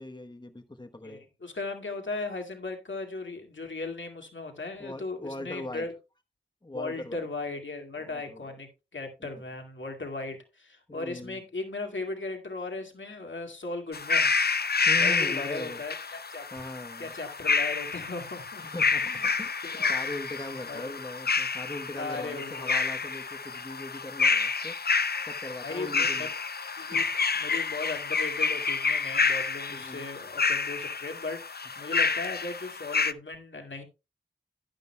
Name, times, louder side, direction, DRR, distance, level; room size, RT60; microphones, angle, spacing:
voice 1, 0.0-1.2 4.8-5.8 6.6-7.2 8.0-8.4 9.2-9.4 10.9-11.4 14.9-15.8 16.5-17.1 18.6-19.0 19.4-24.7 25.3-26.3 26.9-27.0 29.7-30.1, left 1 dB, 25° left, 7 dB, 1.0 m, -40 dB
voice 2, 1.0-5.9 6.7-14.3 15.0-16.5 17.0-18.6 19.0-19.4 19.6-19.9 20.7-20.9 21.9-22.8 25.6-26.3 26.8-33.8, left 3 dB, 80° left, 3 dB, 2.2 m, -37 dB
sound 1, 13.9-33.1, left 5 dB, 55° left, 0.6 m, -29 dB
11.5 x 11.0 x 2.2 m, 0.27 s
wide cardioid pair, 50°, 19 cm